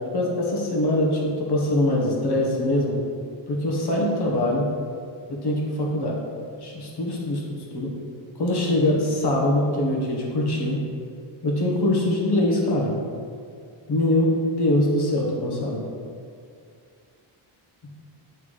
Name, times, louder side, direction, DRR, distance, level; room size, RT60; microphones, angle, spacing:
voice 1, 0.1-2.9 3.5-4.7 5.3-6.1 6.6-7.9 8.4-10.8 11.4-12.9 13.9-15.8, left 1 dB, 55° left, -2 dB, 1.3 m, -23 dB
8.1 x 4.0 x 3.2 m, 2.3 s
wide cardioid pair, 115°, 47 cm